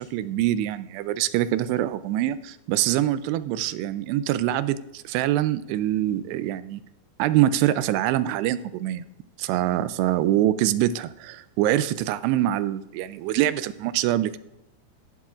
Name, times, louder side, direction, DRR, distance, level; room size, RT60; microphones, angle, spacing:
voice 1, 0.0-6.8 7.2-9.1 9.4-14.4, right 13 dB, 85° right, 14 dB, 2.5 m, -24 dB
15.5 x 11.5 x 2.4 m, 0.88 s
omnidirectional pair, 5.0 m